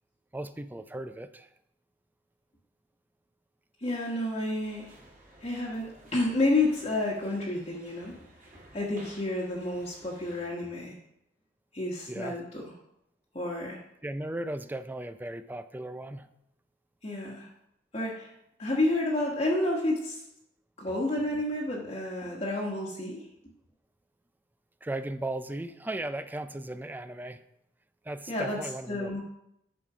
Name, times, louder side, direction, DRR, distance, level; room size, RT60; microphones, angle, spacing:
voice 1, 0.3-1.5 12.1-12.4 14.0-16.3 24.8-27.4 28.1-29.2, right 1 dB, 10° right, 11 dB, 0.4 m, -36 dB
voice 2, 3.8-4.9 5.4-8.2 8.7-11.0 11.7-12.6 13.3-13.8 17.0-17.5 17.9-18.3 18.6-20.2 20.8-23.3 28.3-28.6 28.9-29.2, left 2 dB, 35° left, -4 dB, 1.3 m, -30 dB
sound 1, 4.6-10.5, right 1 dB, 50° right, 2.7 m, -54 dB
9.2 x 6.1 x 4.9 m, 0.80 s
head